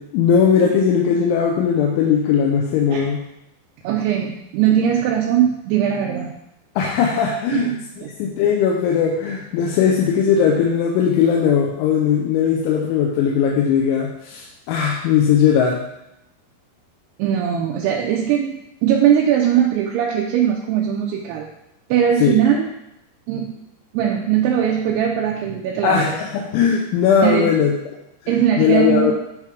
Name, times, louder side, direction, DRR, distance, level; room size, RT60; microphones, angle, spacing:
voice 1, 0.1-3.2 6.8-15.8 22.2-22.3 25.8-27.7 28.2-29.1, left 7 dB, 85° left, -1 dB, 3.2 m, -18 dB
voice 2, 3.8-6.3 7.5-8.1 17.2-21.5 21.9-22.7 23.3-23.5 23.9-26.1 27.2-27.5 28.3-29.1, right 9 dB, 85° right, -1 dB, 2.3 m, -20 dB
9.8 x 3.3 x 4.9 m, 0.84 s
omnidirectional pair, 5.4 m